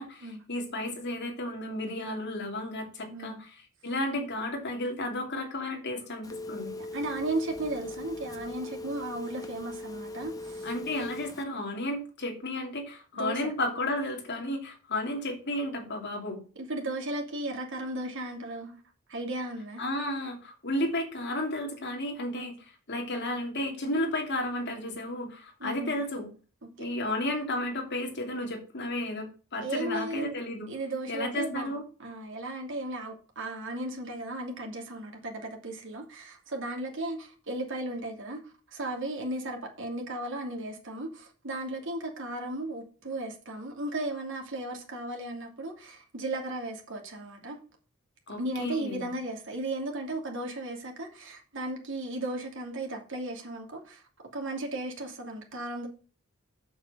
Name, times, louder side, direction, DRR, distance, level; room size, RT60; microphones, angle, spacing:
voice 1, 0.0-3.5 3.8-6.7 10.6-16.4 19.8-26.3 26.8-30.7 31.1-31.8 48.3-49.1, left 1 dB, 55° left, 2.8 m, -33 dB
Telephone, 6.2-11.4, left 2 dB, 15° left, 1.0 m, -40 dB
voice 2, 6.8-10.7 13.1-13.5 16.6-18.8 19.1-19.8 22.3-22.5 25.6-26.0 29.6-30.4 30.7-47.6 48.4-54.0 54.3-55.9, right 1 dB, 60° right, 2.7 m, -35 dB
7.7 x 6.5 x 6.3 m
head